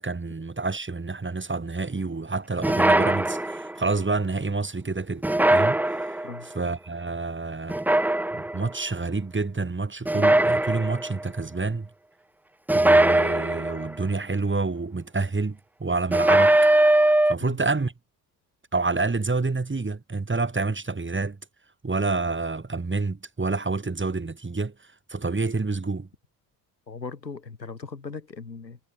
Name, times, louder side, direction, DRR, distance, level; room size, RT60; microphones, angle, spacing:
voice 1, 0.0-7.8 8.3-11.9 12.7-16.7 17.3-17.9 18.7-21.4 21.8-26.1, right 3 dB, 25° right, 7.9 m, -28 dB
sound 1, 2.6-3.8 5.2-6.4 7.7-8.7 10.1-11.2 12.7-14.0 16.1-17.3, right 1 dB, 5° right, 0.6 m, -20 dB
voice 2, 26.9-28.8, left 4 dB, 90° left, 5.2 m, -38 dB
figure-of-eight pair, 45°, 49 cm